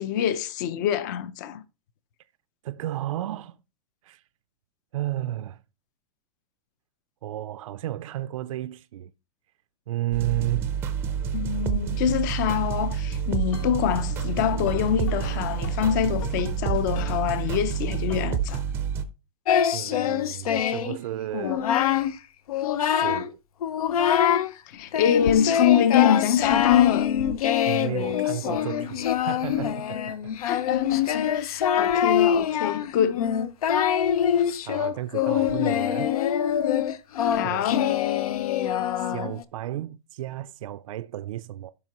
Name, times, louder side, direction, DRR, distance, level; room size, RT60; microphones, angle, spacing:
voice 1, 0.0-1.6 11.3-18.6 24.7-27.1 30.4-33.3 37.3-37.9, left 9 dB, 30° left, 0.6 m, -25 dB
voice 2, 2.6-3.6 4.0-4.2 4.9-5.6 7.2-9.1 9.9-10.8 19.7-21.7 22.8-23.4 27.7-30.3 31.3-31.4 34.7-36.1 37.4-37.8 38.9-41.7, right 14 dB, 65° right, 0.5 m, -33 dB
sound 1, 10.1-19.0, right 8 dB, 10° right, 0.5 m, -28 dB
sound 2, 13.5-17.8 18.1-18.6, left 4 dB, 65° left, 1.4 m, -40 dB
Singing, 19.5-21.0 21.3-22.1 22.5-23.3 23.6-24.5 24.9-39.4, left 9 dB, 80° left, 0.8 m, -24 dB
15.0 x 5.8 x 3.0 m
supercardioid pair, 180°, 18 cm